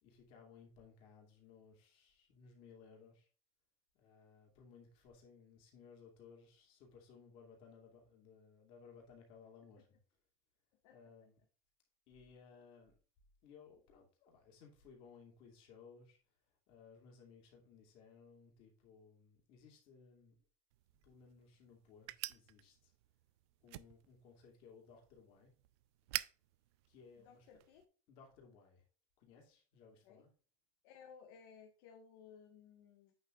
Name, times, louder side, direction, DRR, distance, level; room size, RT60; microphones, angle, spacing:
voice 1, 0.0-3.3 4.0-10.0 10.9-11.4 12.1-13.0 13.4-16.2 16.7-20.4 21.0-22.9 23.6-25.5 26.9-27.5 28.1-28.8 29.2-30.3, left 5 dB, 40° left, 2.6 m, -61 dB
voice 2, 10.8-11.3 27.2-27.8 30.0-30.2 30.8-33.1, left 6 dB, 65° left, 1.4 m, -59 dB
sound 1, 20.7-27.9, right 18 dB, 75° right, 0.5 m, -49 dB
8.7 x 6.6 x 2.4 m
cardioid pair, 180°, 14 cm